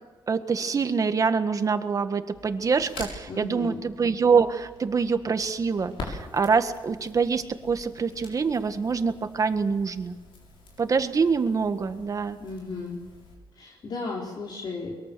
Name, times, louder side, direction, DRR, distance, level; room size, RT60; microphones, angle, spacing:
voice 1, 0.3-10.2 10.8-12.4, right 5 dB, 40° right, 9 dB, 1.7 m, -25 dB
Crackle, 2.3-13.3, left 3 dB, 80° left, 7.1 m, -45 dB
voice 2, 3.3-3.8 12.4-13.0 13.5-14.9, left 3 dB, 55° left, -3 dB, 4.3 m, -35 dB
23.5 x 22.0 x 7.0 m, 1.3 s
cardioid pair, 115°, 9 cm